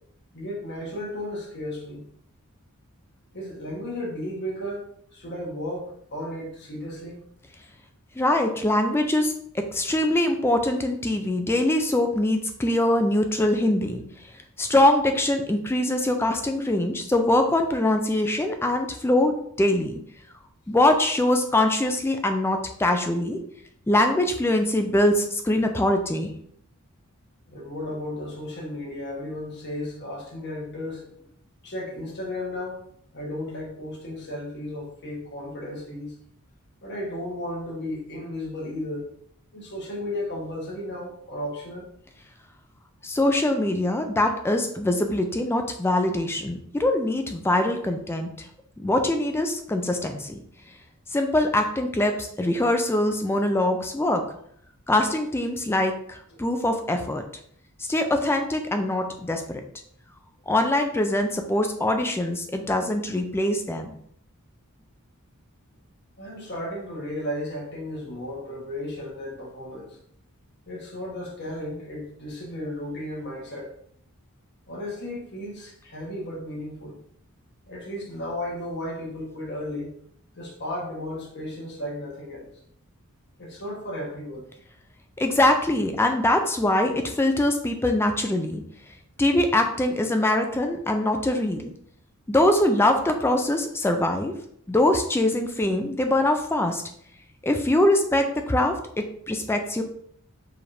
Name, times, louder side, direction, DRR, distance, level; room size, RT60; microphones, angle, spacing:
voice 1, 0.3-2.1 3.3-7.2 27.5-31.3 31.6-32.8 33.1-36.1 36.8-39.1 39.5-41.9 56.3-56.4 66.2-70.0 70.7-73.7 74.7-77.0 77.7-79.9 80.3-82.5 83.4-84.4, left 1 dB, 50° left, -2 dB, 1.3 m, -34 dB
voice 2, 8.2-9.3 9.7-14.0 14.6-20.0 20.7-23.4 23.9-26.3 43.0-48.3 48.8-50.4 51.1-54.2 54.9-57.2 57.9-59.6 60.5-64.0 85.2-88.6 89.2-91.7 92.3-94.4 94.7-96.8 97.4-98.8 99.3-99.8, left 1 dB, 10° left, 5 dB, 0.3 m, -23 dB
4.7 x 3.3 x 2.7 m, 0.66 s
head